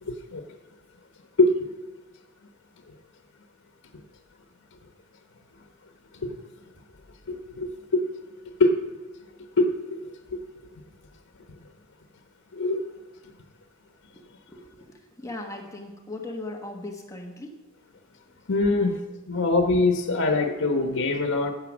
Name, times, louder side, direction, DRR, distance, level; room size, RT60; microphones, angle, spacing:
voice 1, 0.0-0.4 1.4-1.7 6.1-6.3 7.3-8.0 8.6-8.8 9.6-10.0 10.3-10.4 12.5-12.9 18.5-19.0 19.3-21.5, left 2 dB, 90° left, 1.0 m, -23 dB
voice 2, 14.0-17.6 18.8-19.0, left 2 dB, 15° left, 1.3 m, -39 dB
15.5 x 6.8 x 6.1 m
head